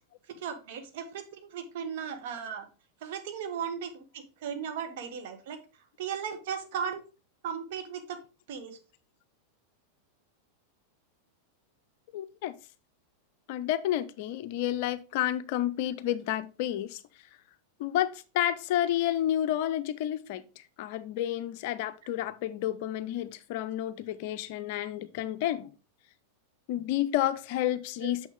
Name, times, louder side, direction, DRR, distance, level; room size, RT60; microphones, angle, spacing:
voice 1, 0.4-2.7 3.0-5.6 6.0-7.0 7.4-8.2 8.5-8.8 28.0-28.1, right 7 dB, 50° right, 1.3 m, -36 dB
voice 2, 12.1-12.5 13.5-17.0 17.8-25.7 26.7-28.3, left 12 dB, 50° left, 0.5 m, -30 dB
6.4 x 6.1 x 3.6 m
figure-of-eight pair, 90°, 0 cm